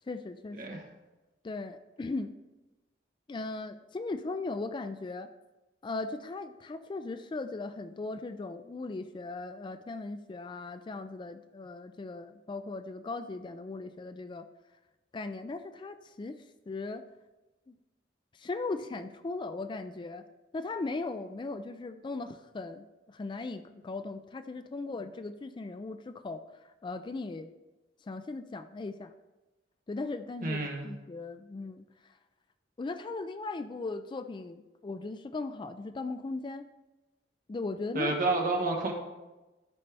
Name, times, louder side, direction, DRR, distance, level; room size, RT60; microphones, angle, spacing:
voice 1, 0.1-0.6 1.4-2.3 3.3-5.3 5.8-14.5 15.1-16.4 16.7-17.0 17.7-17.8 18.4-20.2 20.5-26.4 26.8-27.5 28.1-29.1 29.9-30.6 30.8-31.8 32.8-36.6 37.5-38.1, left 3 dB, 25° left, 10 dB, 0.3 m, -38 dB
voice 2, 30.4-30.9 37.9-38.9, right 3 dB, 45° right, 1 dB, 1.4 m, -30 dB
12.5 x 5.4 x 3.4 m, 1.1 s
head